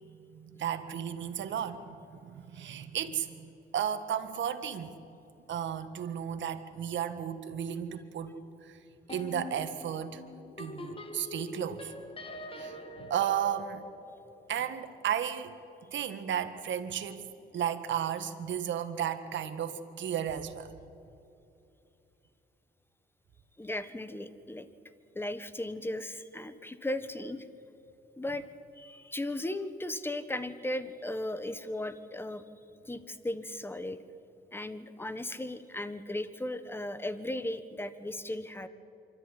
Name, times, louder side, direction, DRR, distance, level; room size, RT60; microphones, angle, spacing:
voice 1, 0.0-5.0 5.5-8.8 9.1-10.2 10.6-11.9 12.6-13.9 14.5-15.6 15.9-20.8, right 9 dB, 70° right, 8 dB, 1.7 m, -34 dB
sound 1, 7.7-8.1 8.3-8.6 9.1-14.8, left 2 dB, 25° left, 2.1 m, -45 dB
voice 2, 23.6-24.7 25.1-27.5 28.2-28.4 28.8-32.4 32.8-34.0 34.5-38.7, left 1 dB, 10° left, 13 dB, 1.3 m, -36 dB
25.5 x 13.5 x 10.0 m, 2.7 s
cardioid pair, 90°, 20 cm